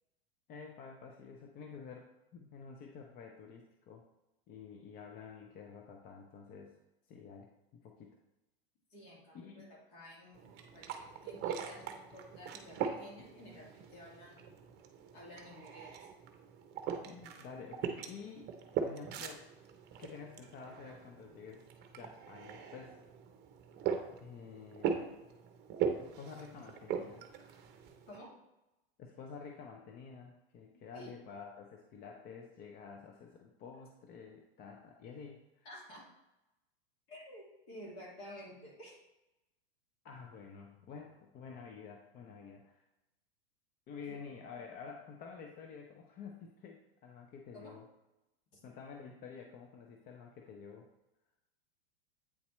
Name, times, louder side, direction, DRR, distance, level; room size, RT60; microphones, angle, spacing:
voice 1, 0.5-4.0 4.5-6.7 7.1-8.2 9.3-9.7 17.1-18.5 18.8-19.4 20.0-21.7 21.9-23.0 24.2-25.1 26.0-27.3 29.0-35.7 40.0-42.8 43.9-47.9 48.6-50.9, left 5 dB, 30° left, 2 dB, 0.6 m, -50 dB
voice 2, 8.9-14.4 15.1-15.9 28.1-28.3 30.9-31.1 35.6-36.1 37.1-39.0 44.1-44.2 47.5-47.7 48.5-48.6, equal, 50° left, -3 dB, 2.2 m, -52 dB
sound 1, 10.3-28.2, right 7 dB, 35° right, 0.8 m, -41 dB
8.5 x 4.1 x 3.1 m, 0.96 s
hypercardioid pair, 120°, 31 cm